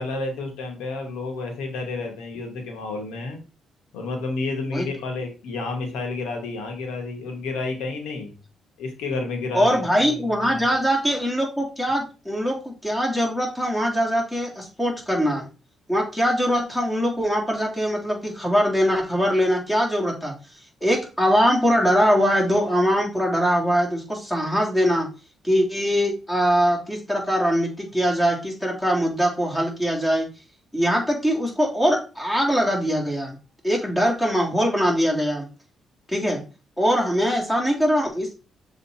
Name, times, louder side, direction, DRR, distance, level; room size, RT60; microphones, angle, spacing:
voice 1, 0.0-3.4 3.9-8.3 8.8-10.1 10.4-10.8, left 3 dB, 90° left, 3 dB, 1.8 m, -30 dB
voice 2, 9.5-15.5 15.9-20.3 20.8-25.1 25.4-30.3 30.7-33.4 33.6-35.5 36.1-36.4 36.8-38.3, equal, 10° left, -1 dB, 3.2 m, -22 dB
6.8 x 4.0 x 4.3 m, 0.32 s
cardioid pair, 90°, 0 cm